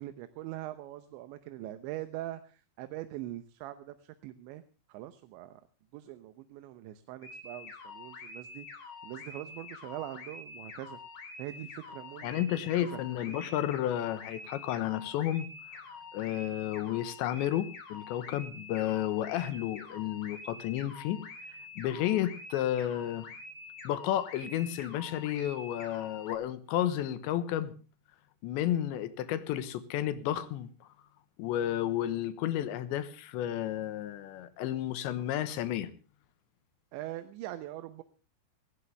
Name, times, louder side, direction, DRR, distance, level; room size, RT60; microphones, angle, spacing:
voice 1, 0.0-4.6 4.9-5.6 5.9-11.0 11.4-12.4 12.8-13.0 13.3-13.4 36.9-38.0, right 14 dB, 85° right, 3.2 m, -42 dB
sound 1, 7.2-26.3, left 3 dB, 45° left, 4.1 m, -47 dB
voice 2, 12.2-15.5 16.1-21.2 21.8-23.3 23.9-27.7 28.4-30.9 31.4-35.9, left 12 dB, 80° left, 3.5 m, -32 dB
19.0 x 17.0 x 3.4 m
omnidirectional pair, 5.1 m